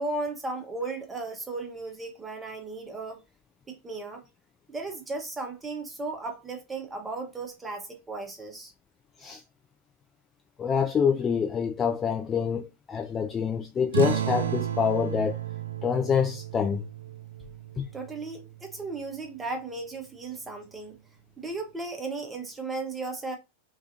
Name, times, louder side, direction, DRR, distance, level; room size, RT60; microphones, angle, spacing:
voice 1, 0.0-3.2 3.7-4.2 4.7-8.7 17.9-21.0 21.4-23.4, right 3 dB, 15° right, 0.7 m, -35 dB
voice 2, 10.6-15.4 15.8-16.8 17.8-17.9, left 7 dB, 20° left, 0.3 m, -26 dB
sound 1, 13.9-19.0, right 11 dB, 65° right, 0.3 m, -33 dB
2.4 x 2.3 x 2.7 m
figure-of-eight pair, 90°, 0 cm